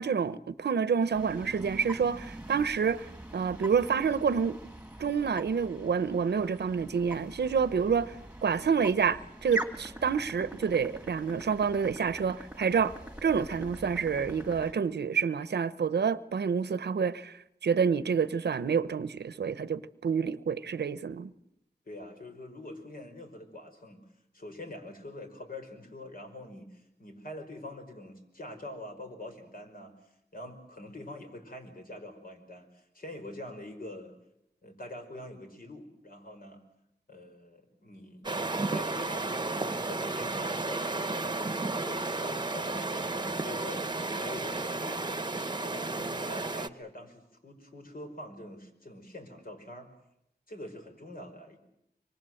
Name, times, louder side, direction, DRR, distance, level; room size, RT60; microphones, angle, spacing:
voice 1, 0.0-3.1 3.3-4.6 5.0-8.1 8.4-12.9 13.2-17.4 17.6-21.3, right 6 dB, 85° right, 0.9 m, -28 dB
sound 1, 1.1-14.7, right 1 dB, 5° right, 2.1 m, -43 dB
voice 2, 21.9-24.0 24.3-29.9 30.3-34.1 34.6-36.6 37.1-45.0 45.6-49.9 50.5-51.6, left 1 dB, 60° left, 5.1 m, -45 dB
sound 2, 38.2-46.7, right 3 dB, 25° right, 1.1 m, -33 dB
25.5 x 23.5 x 7.8 m
wide cardioid pair, 80°, 17 cm